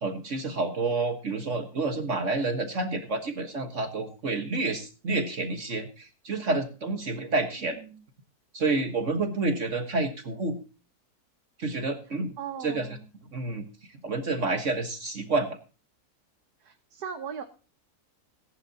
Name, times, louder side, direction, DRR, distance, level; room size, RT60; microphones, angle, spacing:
voice 1, 0.0-7.8 8.5-10.6 11.6-12.3 12.6-12.9 13.3-13.7 14.0-15.6, right 3 dB, 50° right, 6 dB, 1.7 m, -29 dB
voice 2, 7.1-8.0 12.1-13.1 16.6-17.4, right 7 dB, 80° right, 5 dB, 1.7 m, -40 dB
19.0 x 11.0 x 2.8 m, 0.33 s
omnidirectional pair, 1.6 m